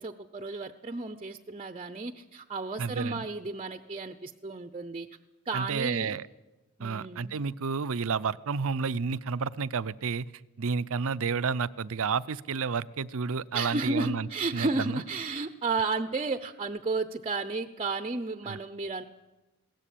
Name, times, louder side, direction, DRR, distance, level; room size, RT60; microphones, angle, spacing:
voice 1, 0.0-5.1 5.5-6.2 6.8-7.4 13.5-19.0, right 3 dB, 25° right, 9 dB, 0.7 m, -33 dB
voice 2, 2.8-3.3 5.5-6.3 6.8-10.3 10.6-15.0 18.5-18.6, right 5 dB, 65° right, 17 dB, 0.6 m, -31 dB
21.5 x 17.0 x 8.6 m, 1.1 s
head